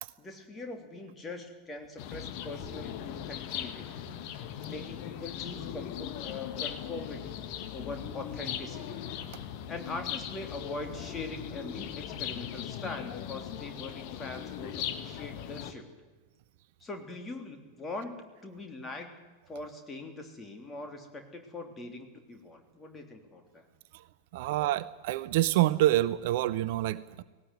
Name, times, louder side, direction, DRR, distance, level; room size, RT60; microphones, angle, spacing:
voice 1, 0.2-4.1 4.6-9.0 9.7-15.8 16.8-19.2 19.5-23.7, left 2 dB, 20° left, 5 dB, 3.3 m, -42 dB
sound 1, 2.0-15.7, left 10 dB, 45° left, 1.6 m, -39 dB
voice 2, 24.3-27.2, right 15 dB, 50° right, 17 dB, 0.6 m, -27 dB
18.0 x 18.0 x 9.7 m, 1.3 s
figure-of-eight pair, 90°, 0 cm